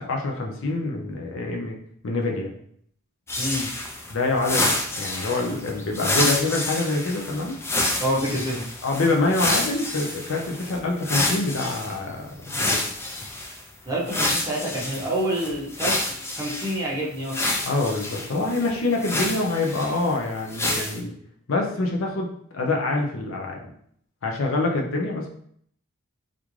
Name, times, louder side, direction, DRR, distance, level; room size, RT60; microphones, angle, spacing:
voice 1, 0.0-1.8 2.0-2.5 4.1-7.6 8.8-12.8 17.6-21.1 21.5-23.6 24.2-25.3, left 2 dB, 65° left, 1 dB, 0.6 m, -26 dB
sound 1, 3.3-11.9 12.4-13.6 14.1-16.8 17.3-20.1 20.5-21.0, left 2 dB, 10° left, 0.3 m, -28 dB
voice 2, 3.4-3.7 8.0-8.7 13.9-16.0 16.3-17.4, right 1 dB, 15° right, -5 dB, 0.9 m, -27 dB
3.5 x 2.5 x 3.1 m, 0.65 s
head